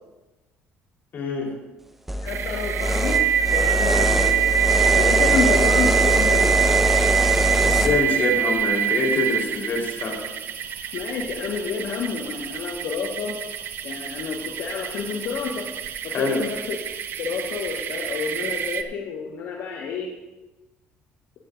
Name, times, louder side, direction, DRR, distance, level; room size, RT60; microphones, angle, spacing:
voice 1, 1.1-1.5 7.4-10.2 16.1-16.4, left 3 dB, 45° left, -1 dB, 3.9 m, -25 dB
sound 1, 2.1-7.9, equal, 5° right, 1.1 m, -22 dB
voice 2, 2.2-3.2 3.5-4.5 5.0-6.6 10.9-13.4 13.8-15.6 16.0-16.8 17.2-20.1, left 5 dB, 70° left, -1 dB, 1.5 m, -29 dB
sound 2, 2.3-18.8, right 9 dB, 50° right, 0.8 m, -25 dB
16.0 x 13.0 x 2.6 m, 1.1 s
cardioid pair, 125°, 5 cm